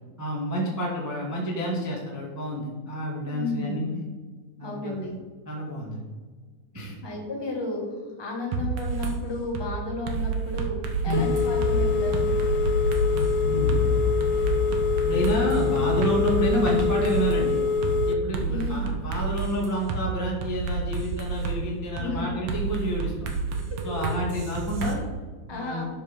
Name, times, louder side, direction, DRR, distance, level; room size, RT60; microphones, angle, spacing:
voice 1, 0.2-4.0 4.6-4.9 5.4-6.0 6.7-6.9 11.1-11.3 13.4-13.9 15.1-17.6 18.1-23.3 23.8-25.0 25.5-25.8, equal, 10° right, -3 dB, 0.8 m, -29 dB
voice 2, 3.3-3.8 4.6-5.2 7.0-7.9 8.2-12.3 18.4-18.9 22.0-22.3 23.7-23.8 25.5-25.8, left 2 dB, 15° left, -1 dB, 0.8 m, -33 dB
sound 1, 8.5-9.2 9.5-9.7 10.1-11.7 12.1-13.3 13.7-13.8 14.2-17.4 17.8-18.0 18.3-20.0 20.4-21.6 22.0-22.1 22.5-24.9, right 5 dB, 65° right, 2.1 m, -30 dB
Telephone, 11.1-18.1, left 5 dB, 90° left, 1.4 m, -24 dB
12.0 x 5.2 x 5.2 m, 1.4 s
omnidirectional pair, 3.8 m